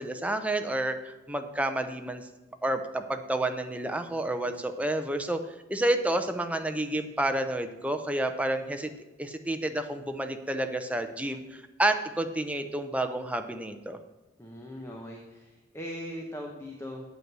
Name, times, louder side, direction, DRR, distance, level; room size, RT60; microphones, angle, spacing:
voice 1, 0.0-2.2 2.6-5.4 5.7-8.9 9.2-14.0, right 1 dB, 5° right, 6 dB, 0.6 m, -30 dB
voice 2, 14.4-17.0, equal, 15° left, 0 dB, 1.0 m, -40 dB
8.2 x 7.9 x 6.1 m, 1.1 s
head